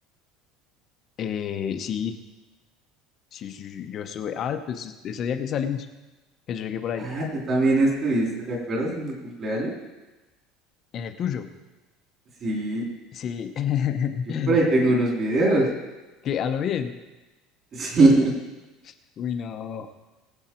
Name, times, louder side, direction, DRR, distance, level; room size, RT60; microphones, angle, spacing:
voice 1, 1.2-2.2 3.3-5.9 6.5-7.1 10.9-11.5 13.1-14.6 16.2-16.9 18.8-19.9, left 8 dB, 30° left, 7 dB, 0.8 m, -29 dB
voice 2, 7.0-9.7 12.4-12.8 14.5-15.7 17.7-18.3, right 2 dB, 30° right, -1 dB, 3.1 m, -22 dB
20.5 x 8.0 x 4.4 m, 1.1 s
cardioid pair, 170°, 0 cm